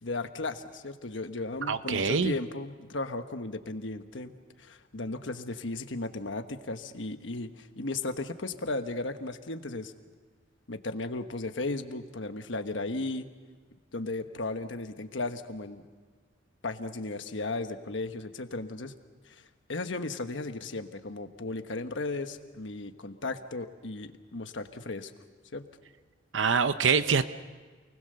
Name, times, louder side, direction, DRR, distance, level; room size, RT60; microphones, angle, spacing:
voice 1, 0.0-9.9 10.7-13.3 13.9-15.8 16.6-18.9 19.3-19.4 19.7-25.1 25.5-25.7, left 2 dB, 70° left, 8 dB, 1.3 m, -35 dB
voice 2, 1.7-2.3 26.3-27.3, right 5 dB, 70° right, 12 dB, 0.7 m, -25 dB
28.5 x 20.0 x 6.8 m, 1.4 s
head